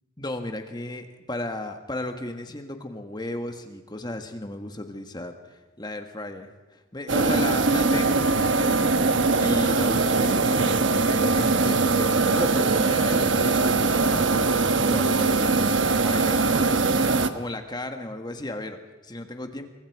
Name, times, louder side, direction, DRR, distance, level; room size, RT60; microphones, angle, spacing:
voice 1, 0.2-14.3 14.8-19.7, left 1 dB, 20° left, 6 dB, 1.5 m, -35 dB
sound 1, 7.1-17.3, right 3 dB, 75° right, 1.2 m, -21 dB
27.0 x 23.5 x 4.8 m, 1.1 s
head